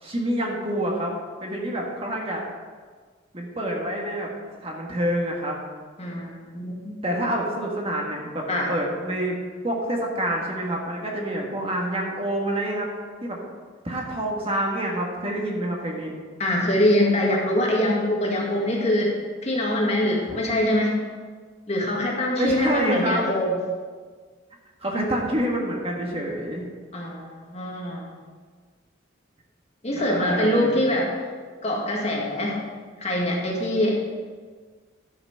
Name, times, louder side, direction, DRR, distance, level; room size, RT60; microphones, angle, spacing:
voice 1, 0.0-1.1 1.4-2.4 3.3-4.3 4.6-5.6 7.0-9.4 9.6-12.9 13.2-13.4 13.8-16.1 20.3-20.4 22.3-23.2 24.8-26.7 29.9-30.7, right 1 dB, 30° right, -1 dB, 1.6 m, -27 dB
voice 2, 6.0-7.3 8.5-8.7 16.4-19.2 19.4-21.0 21.7-23.6 26.9-28.1 29.8-31.1 31.6-32.6 33.0-34.0, left 1 dB, 35° left, -2 dB, 1.8 m, -24 dB
11.5 x 5.9 x 5.7 m, 1.5 s
head